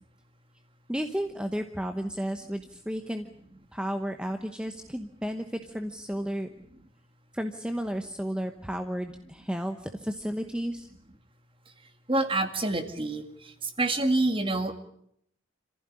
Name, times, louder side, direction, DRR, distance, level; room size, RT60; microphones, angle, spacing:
voice 1, 0.9-3.3 3.7-6.5 7.3-10.9, equal, 5° right, 6 dB, 0.9 m, -33 dB
voice 2, 12.1-13.2 13.6-14.7, right 2 dB, 25° right, 8 dB, 2.1 m, -26 dB
27.0 x 15.0 x 9.8 m, 0.72 s
head